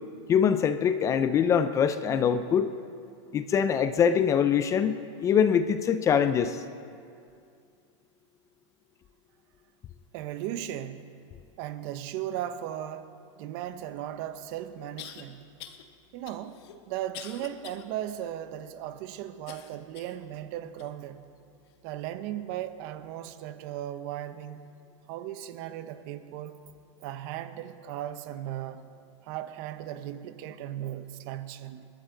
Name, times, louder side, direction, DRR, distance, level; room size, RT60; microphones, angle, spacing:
voice 1, 0.3-2.7 3.3-6.6, left 7 dB, 20° left, 0.5 m, -23 dB
voice 2, 10.1-11.1 11.6-15.5 16.1-21.3 21.8-24.6 25.1-26.6 27.0-28.9 29.2-31.9, right 11 dB, 40° right, 0.9 m, -37 dB
sound 1, 14.0-14.1 15.0-15.2 15.6-15.8 16.3-17.9 18.3-18.4 19.5-20.2 20.8-20.9 21.7-21.8, left 10 dB, 55° left, 1.4 m, -45 dB
29.0 x 12.5 x 3.9 m
supercardioid pair, 150°, 16 cm